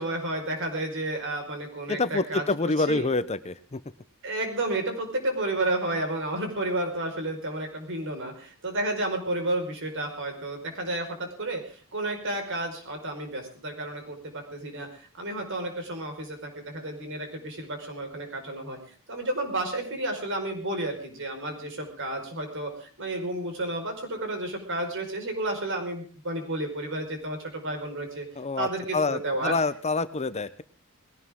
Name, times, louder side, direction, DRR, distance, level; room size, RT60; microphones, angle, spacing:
voice 1, 0.0-2.4 2.9-3.1 4.2-14.9 15.2-18.8 19.1-28.2 28.6-29.5, right 1 dB, 60° right, 4 dB, 5.0 m, -31 dB
voice 2, 1.9-3.8 28.4-30.5, left 3 dB, 30° left, 13 dB, 0.7 m, -27 dB
20.5 x 17.5 x 3.7 m, 0.41 s
head